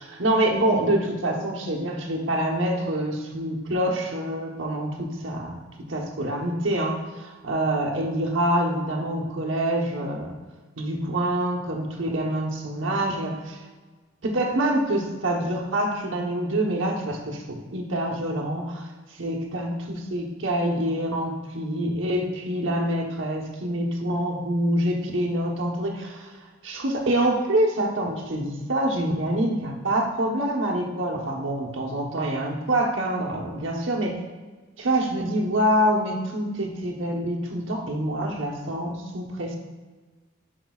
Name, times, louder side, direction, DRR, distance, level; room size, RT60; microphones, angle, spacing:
voice 1, 0.2-10.4 10.8-13.6 14.2-26.4 26.6-34.2 34.8-39.6, right 1 dB, 70° right, 0 dB, 1.1 m, -26 dB
10.5 x 4.7 x 2.4 m, 1.4 s
head